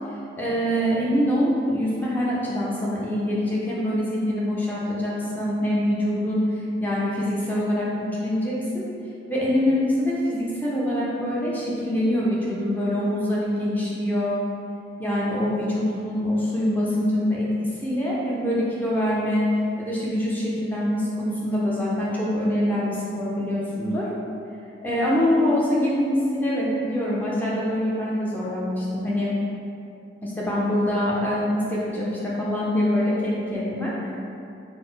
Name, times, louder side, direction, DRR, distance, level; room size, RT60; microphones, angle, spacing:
voice 1, 0.4-6.4 6.8-7.9 8.2-8.8 9.3-14.3 15.0-17.5 17.8-19.4 19.8-24.1 24.8-29.3 30.2-34.1, left 1 dB, 10° left, -7 dB, 0.5 m, -24 dB
4.0 x 2.0 x 3.8 m, 2.6 s
head